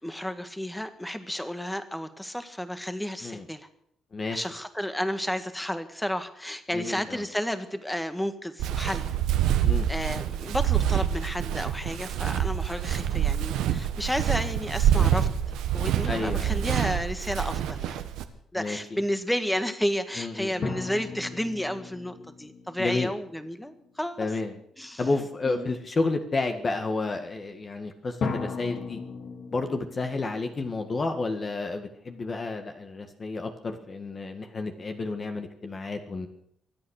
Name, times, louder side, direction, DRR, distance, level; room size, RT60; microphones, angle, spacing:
voice 1, 0.0-3.7 4.3-9.1 9.9-15.3 15.7-18.0 18.5-24.3 24.8-25.0 25.4-25.7, equal, 5° left, 9 dB, 1.7 m, -32 dB
voice 2, 6.7-7.2 9.6-9.9 16.1-16.7 18.6-19.0 20.2-20.7 22.8-23.1 24.2-24.5 25.0-29.0 29.5-36.3, left 3 dB, 35° left, 5 dB, 1.8 m, -31 dB
Walk footsteps, 8.6-18.2, right 10 dB, 90° right, 1.3 m, -26 dB
sound 1, 20.6-24.0 28.2-31.5, left 4 dB, 60° left, 2.3 m, -37 dB
24.0 x 8.8 x 6.5 m, 0.72 s
cardioid pair, 90°, 0 cm